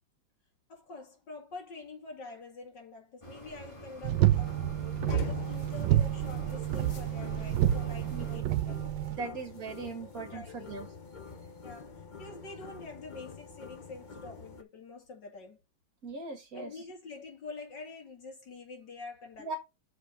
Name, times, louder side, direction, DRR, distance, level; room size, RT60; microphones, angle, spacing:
voice 1, 0.7-4.6 5.1-8.9 9.2-9.4 10.0-10.7 11.6-15.6 16.5-19.6, left 3 dB, 70° left, 2.9 m, -46 dB
sound 1, 3.2-8.4, right 2 dB, 15° left, 1.6 m, -47 dB
sound 2, 4.0-9.2, right 13 dB, 85° right, 1.3 m, -29 dB
sound 3, 4.4-14.6, left 5 dB, 50° left, 0.5 m, -45 dB
voice 2, 9.1-10.9 16.0-16.7 19.4-19.6, right 3 dB, 50° right, 2.0 m, -39 dB
6.4 x 4.9 x 5.1 m
omnidirectional pair, 2.0 m